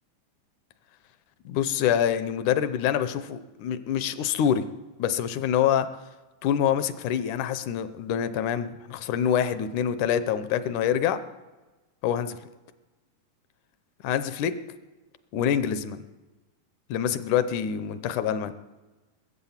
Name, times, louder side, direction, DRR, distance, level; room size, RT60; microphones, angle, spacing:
voice 1, 1.5-4.6 5.0-5.9 6.4-11.2 12.0-12.4 14.0-14.5 15.3-16.0 16.9-18.5, left 9 dB, 75° left, 12 dB, 2.1 m, -26 dB
20.5 x 8.4 x 7.2 m, 1.2 s
omnidirectional pair, 3.7 m